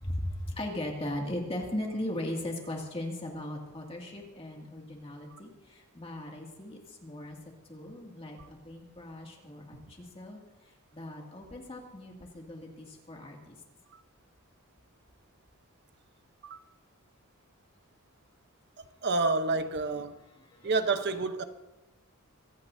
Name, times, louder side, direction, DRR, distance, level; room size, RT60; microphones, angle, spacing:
voice 1, 0.0-7.4 7.7-8.4 8.6-10.4 10.9-13.6 20.6-20.7, left 1 dB, 25° left, 2.4 m, -38 dB
voice 2, 18.8-20.2 20.6-21.4, right 3 dB, 50° right, 1.0 m, -29 dB
25.0 x 15.5 x 2.7 m
head